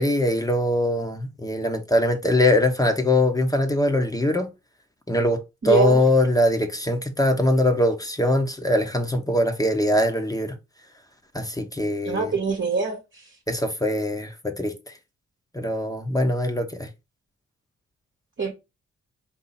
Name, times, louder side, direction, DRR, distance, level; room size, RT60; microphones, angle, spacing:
voice 1, 0.0-4.5 5.1-5.4 5.6-10.5 11.3-12.3 13.5-14.7 15.5-16.9, left 1 dB, 10° left, 1.0 m, -22 dB
voice 2, 5.6-6.0 12.0-13.0 18.4-18.5, right 4 dB, 40° right, 1.2 m, -23 dB
4.1 x 2.7 x 4.2 m
cardioid pair, 55°, 29 cm